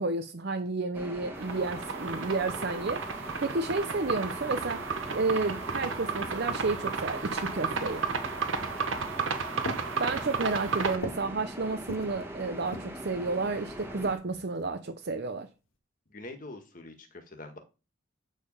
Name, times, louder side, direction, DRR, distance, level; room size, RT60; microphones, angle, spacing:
voice 1, 0.0-8.0 10.0-15.5, right 3 dB, 50° right, 0.6 m, -31 dB
sound 1, 0.9-14.2, right 1 dB, 10° right, 1.6 m, -42 dB
sound 2, 1.3-11.0, right 5 dB, 65° right, 1.1 m, -33 dB
sound 3, 5.5-6.7 7.5-8.0 8.8-9.2 9.6-11.3 11.7-12.2 12.6-13.1 13.8-14.8, left 1 dB, 70° left, 1.9 m, -43 dB
voice 2, 16.1-17.6, left 2 dB, 40° left, 1.6 m, -44 dB
8.5 x 5.0 x 5.5 m
head